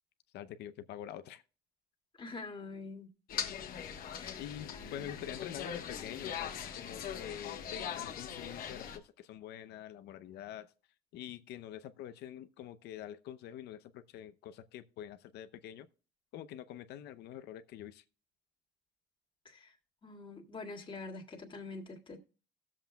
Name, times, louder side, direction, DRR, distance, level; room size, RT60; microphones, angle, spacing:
voice 1, 0.3-1.4 4.3-10.7 11.1-15.9 16.3-18.0, left 10 dB, 80° left, 0.7 m, -46 dB
voice 2, 2.2-3.1 4.1-4.4 4.7-5.1 19.5-19.8 20.0-22.2, left 3 dB, 30° left, 2.0 m, -45 dB
sound 1, 3.3-9.0, left 8 dB, 60° left, 1.3 m, -41 dB
17.0 x 7.4 x 2.3 m
cardioid pair, 110°, 17 cm